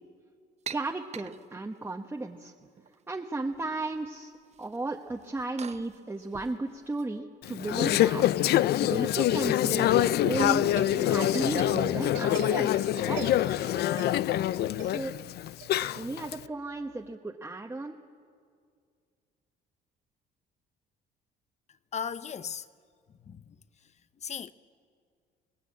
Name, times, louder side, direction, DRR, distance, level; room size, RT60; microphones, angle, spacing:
voice 1, 0.7-2.5 3.1-4.3 4.6-8.2 8.8-10.6 11.0-13.3 14.8-15.1 15.9-18.0, right 2 dB, 10° right, 1.2 m, -34 dB
sound 1, 0.7-1.9 2.6-3.2 3.5-4.1 4.3-7.1, right 8 dB, 35° right, 0.8 m, -46 dB
Conversation / Chatter, 7.4-16.3, left 13 dB, 60° left, 0.5 m, -25 dB
sound 2, 9.8-17.1, right 15 dB, 85° right, 0.6 m, -43 dB
voice 2, 21.9-22.7 23.2-23.6 24.2-24.5, left 7 dB, 40° left, 0.8 m, -36 dB
24.0 x 19.5 x 8.6 m
cardioid pair, 105°, 18 cm